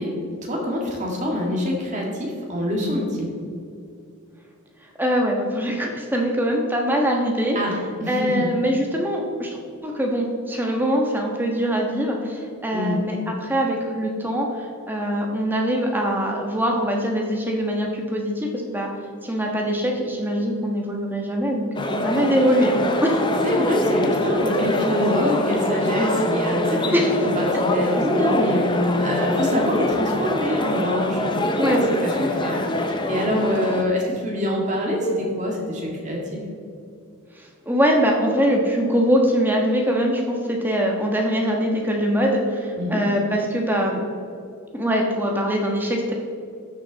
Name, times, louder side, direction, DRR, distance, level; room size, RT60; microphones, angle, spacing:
voice 1, 0.0-3.3 7.6-8.5 12.7-13.0 23.4-36.4 42.8-43.0, equal, 35° right, -1 dB, 2.0 m, -25 dB
voice 2, 5.0-7.6 8.1-14.5 14.9-18.9 19.2-23.1 26.9-27.1 31.6-31.8 37.7-44.0 44.7-46.1, equal, 10° right, 0 dB, 1.2 m, -23 dB
sound 1, 21.7-33.8, left 1 dB, 20° left, 0.6 m, -24 dB
13.0 x 6.5 x 4.0 m, 2.4 s
head